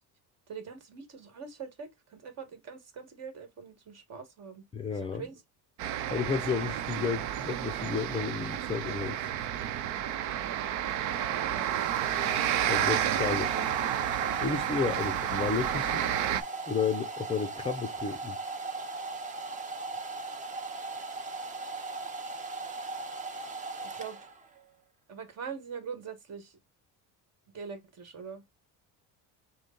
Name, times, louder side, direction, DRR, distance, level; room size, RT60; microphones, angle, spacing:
voice 1, 0.5-4.6 4.9-5.4 10.2-12.0 14.4-14.6 20.7-20.8 22.6-22.9 23.8-24.2 25.1-26.6 27.5-28.4, right 6 dB, 40° right, 1.6 m, -43 dB
voice 2, 4.7-5.3 5.8-9.3 12.7-13.5 14.4-16.0 16.7-18.4, left 5 dB, 15° left, 0.5 m, -32 dB
sound 1, 5.8-16.4, right 11 dB, 80° right, 0.8 m, -31 dB
Domestic sounds home sounds, 10.9-24.6, right 3 dB, 20° right, 0.7 m, -38 dB
6.3 x 2.2 x 3.8 m
cardioid pair, 155°, 39 cm